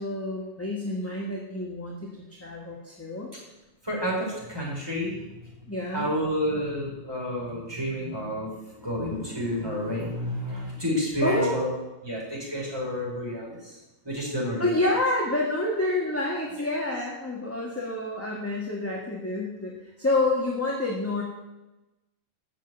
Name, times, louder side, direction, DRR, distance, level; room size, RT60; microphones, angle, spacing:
voice 1, 0.0-2.1 2.4-3.3 5.7-6.1 11.2-11.6 14.6-19.7 20.0-21.2, left 2 dB, 10° left, -3 dB, 1.6 m, -28 dB
voice 2, 3.8-5.5 5.9-11.7 12.0-13.8 14.0-14.9 16.6-16.7, equal, 15° right, -4 dB, 4.4 m, -30 dB
13.5 x 5.7 x 8.2 m, 1.0 s
omnidirectional pair, 1.5 m